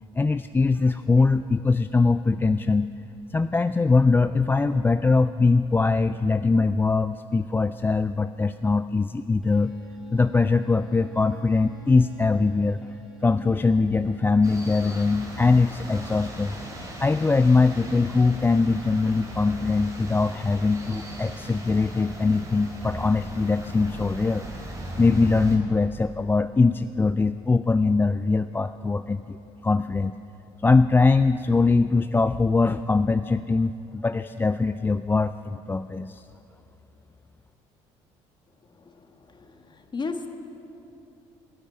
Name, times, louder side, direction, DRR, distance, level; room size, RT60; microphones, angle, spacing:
voice 1, 0.2-2.9 3.3-9.7 10.1-12.9 13.2-16.6 17.0-24.5 25.0-29.4 29.6-30.1 30.6-36.3, left 3 dB, 15° left, 11 dB, 0.3 m, -22 dB
Bowed string instrument, 9.4-14.9, left 3 dB, ahead, 2.6 m, -50 dB
sound 1, 14.4-25.6, right 1 dB, 25° right, 3.4 m, -38 dB
voice 2, 39.9-40.3, left 4 dB, 35° left, 6 dB, 1.4 m, -32 dB
13.0 x 8.7 x 9.4 m, 2.9 s
supercardioid pair, 70°, 13 cm